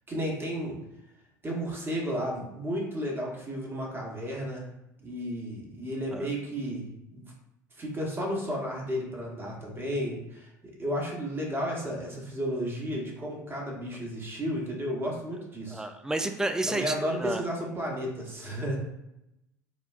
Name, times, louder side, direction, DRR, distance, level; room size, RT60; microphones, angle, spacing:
voice 1, 0.1-0.8 1.4-4.7 5.0-7.2 7.8-15.8 16.7-18.8, equal, 20° right, -2 dB, 1.1 m, -33 dB
voice 2, 15.7-17.4, right 2 dB, 5° right, 7 dB, 0.3 m, -31 dB
3.9 x 2.2 x 2.4 m, 0.88 s
hypercardioid pair, 70°, 10 cm